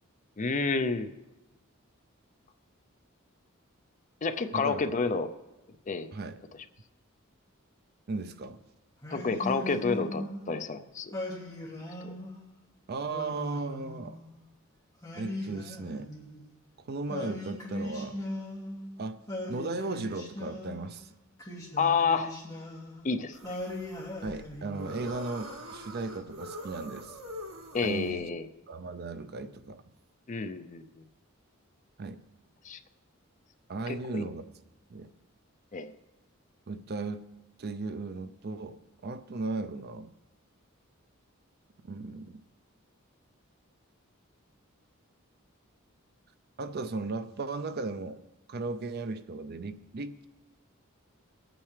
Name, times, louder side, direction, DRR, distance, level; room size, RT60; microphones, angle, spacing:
voice 1, 0.4-1.1 4.2-5.3 5.9-6.1 9.1-11.1 12.0-12.1 21.8-22.3 23.0-23.6 27.7-28.4 30.3-30.8 32.6-32.8 33.9-34.2 35.7-35.9, left 4 dB, 35° left, 10 dB, 0.5 m, -29 dB
voice 2, 4.5-5.0 6.1-6.4 8.1-8.6 12.9-14.2 15.1-16.1 16.8-18.2 19.0-19.2 19.5-21.1 24.2-27.2 27.8-28.3 28.7-29.8 32.0-32.2 33.7-34.5 34.9-35.1 36.7-37.2 37.6-40.1 41.8-42.4 46.6-48.2 48.5-50.3, right 3 dB, 50° right, 12 dB, 0.5 m, -36 dB
Singing, 9.0-10.5 11.1-12.5 13.1-14.4 15.0-16.5 17.1-18.9 19.3-20.9 21.4-23.0 23.4-25.1, left 1 dB, 15° left, 2.3 m, -39 dB
sound 1, 23.3-28.3, equal, 80° right, 1.7 m, -44 dB
20.5 x 8.8 x 3.3 m, 1.0 s
head